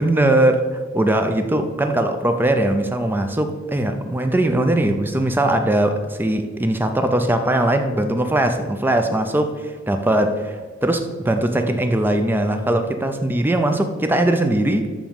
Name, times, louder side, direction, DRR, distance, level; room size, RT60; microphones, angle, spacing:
voice 1, 0.0-14.9, right 1 dB, 10° right, 0.4 m, -20 dB
7.1 x 3.0 x 5.2 m
head